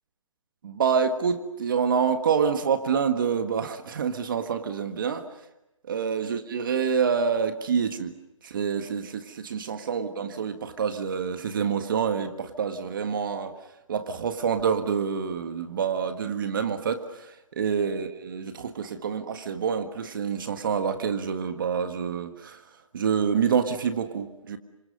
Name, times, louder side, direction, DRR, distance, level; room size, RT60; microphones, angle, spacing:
voice 1, 0.6-5.3 5.9-8.1 8.4-13.5 13.9-22.6 22.9-24.6, right 6 dB, 40° right, 8 dB, 1.7 m, -27 dB
29.0 x 26.5 x 6.6 m, 0.94 s
hypercardioid pair, 160°, 17 cm